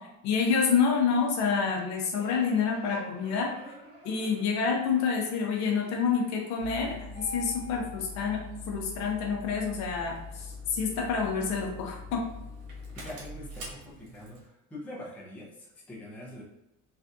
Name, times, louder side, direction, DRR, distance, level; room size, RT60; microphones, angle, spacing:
voice 1, 0.2-3.5 4.0-8.4 8.7-12.3, left 5 dB, 60° left, 1 dB, 0.7 m, -28 dB
sound 1, 2.1-7.0, right 1 dB, 30° right, 1.5 m, -51 dB
Engine starting, 6.6-14.4, left 3 dB, 80° right, 1.2 m, -43 dB
voice 2, 13.0-16.4, left 1 dB, 5° left, -5 dB, 0.5 m, -44 dB
3.3 x 2.5 x 2.6 m, 0.88 s
cardioid pair, 165°, 32 cm